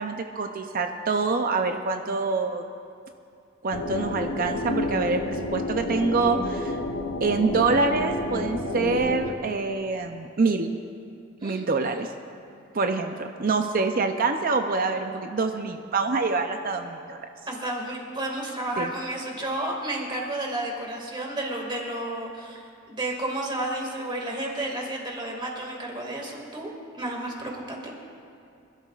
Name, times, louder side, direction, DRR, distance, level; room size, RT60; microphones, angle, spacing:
voice 1, 0.0-2.6 3.6-6.8 7.2-10.7 11.4-12.1 12.7-17.2 18.8-18.9, right 4 dB, 45° right, 5 dB, 0.6 m, -26 dB
sound 1, 3.7-9.3, left 2 dB, 80° left, 0.8 m, -30 dB
voice 2, 17.5-27.9, right 1 dB, 25° right, 0 dB, 2.1 m, -32 dB
26.0 x 12.5 x 2.4 m, 2.5 s
head